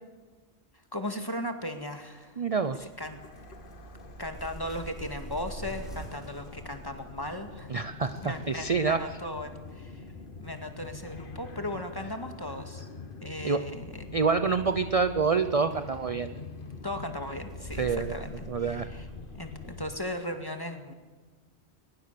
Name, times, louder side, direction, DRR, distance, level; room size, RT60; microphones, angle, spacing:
voice 1, 0.9-2.4 2.8-3.2 4.2-7.7 8.2-10.1 10.4-12.9 13.2-14.1 16.8-19.1 19.3-20.9, left 1 dB, 20° left, 6 dB, 2.1 m, -37 dB
voice 2, 2.4-2.9 7.7-9.0 13.4-13.6 14.1-16.3 17.8-18.1 18.5-18.9, right 5 dB, 35° right, 10 dB, 0.7 m, -27 dB
sound 1, 2.6-20.1, right 1 dB, ahead, 5.9 m, -48 dB
sound 2, 2.8-19.9, left 4 dB, 55° left, 1.5 m, -45 dB
22.0 x 21.5 x 6.9 m, 1.4 s
omnidirectional pair, 1.1 m